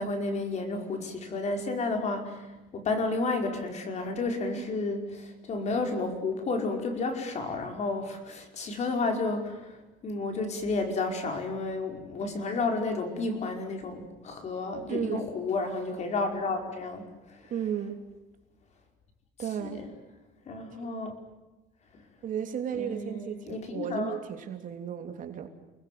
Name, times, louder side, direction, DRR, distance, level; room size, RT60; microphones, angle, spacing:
voice 1, 0.0-9.8 10.0-17.5 19.6-19.9 20.5-21.2 22.7-24.2, left 3 dB, 40° left, 5 dB, 5.2 m, -31 dB
voice 2, 14.9-15.3 17.5-18.0 19.4-19.8 22.2-25.5, right 8 dB, 45° right, 5 dB, 3.1 m, -34 dB
30.0 x 20.5 x 9.4 m, 1.1 s
cardioid pair, 140°, 18 cm